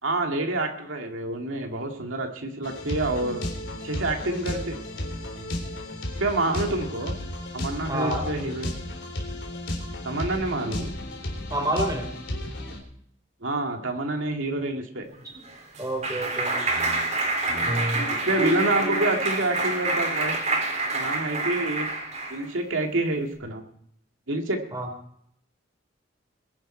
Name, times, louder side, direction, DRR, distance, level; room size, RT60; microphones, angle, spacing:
voice 1, 0.0-3.4 3.8-4.8 6.2-7.1 7.5-8.8 10.0-10.9 13.4-15.1 18.3-20.4 20.9-21.9 22.3-23.6 24.3-24.6, right 2 dB, 85° right, 2 dB, 2.1 m, -27 dB
sound 1, 2.6-12.8, left 1 dB, 75° left, 3.6 m, -33 dB
voice 2, 7.9-8.3 11.5-12.1 15.8-16.6 24.7-24.9, right 1 dB, 20° right, 4 dB, 3.5 m, -28 dB
Clapping, 15.2-22.5, right 2 dB, 35° right, 3.8 m, -27 dB
21.5 x 11.0 x 4.4 m, 0.69 s
head